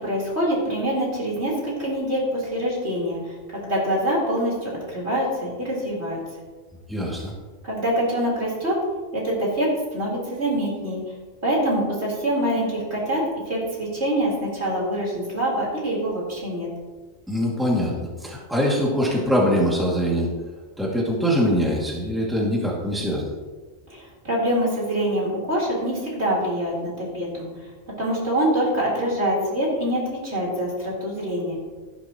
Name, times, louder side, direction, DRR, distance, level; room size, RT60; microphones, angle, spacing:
voice 1, 0.0-6.2 7.6-8.8 9.1-11.0 11.4-16.7 23.9-27.5 28.0-31.6, right 1 dB, 65° right, -5 dB, 4.5 m, -25 dB
voice 2, 6.9-7.3 17.3-20.3 20.8-23.3, equal, ahead, -4 dB, 2.5 m, -23 dB
14.0 x 12.0 x 3.1 m, 1.3 s
omnidirectional pair, 1.2 m